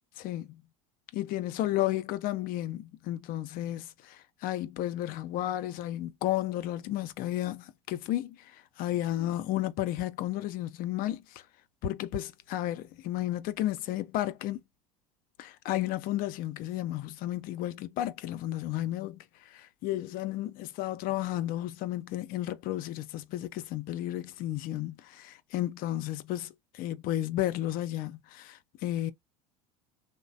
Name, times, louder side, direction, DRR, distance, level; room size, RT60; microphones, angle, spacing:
voice 1, 0.2-0.6 1.1-8.4 8.8-11.2 11.8-14.6 15.4-19.2 19.5-29.1, left 14 dB, 55° left, 0.5 m, -33 dB
3.0 x 2.0 x 2.5 m
hypercardioid pair, 85°, 18 cm